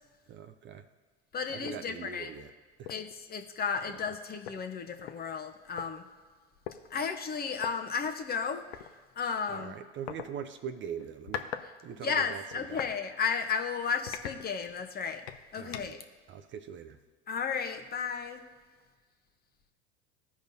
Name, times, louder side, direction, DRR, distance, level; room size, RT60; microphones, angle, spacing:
voice 1, 0.3-0.9 1.5-2.5 2.8-2.9 3.9-4.0 9.5-11.5 11.8-12.9 15.6-16.0 16.3-17.0, right 7 dB, 35° right, 8 dB, 0.6 m, -42 dB
voice 2, 1.3-2.3 2.9-6.0 6.9-8.6 9.2-9.8 12.0-15.2 15.5-16.0 17.3-18.4, left 6 dB, 30° left, 6 dB, 0.9 m, -33 dB
sound 1, 1.6-1.8 2.3-2.4 2.8-3.1 4.1-4.2 4.4-5.9 6.6-6.8 7.6-7.7 8.7-8.9 10.1-10.3 11.0-11.7 12.0-13.0 13.4-13.6 14.1-14.9 15.3-16.1, left 10 dB, 80° left, 0.6 m, -41 dB
15.0 x 5.1 x 2.7 m, 1.5 s
hypercardioid pair, 85°, 32 cm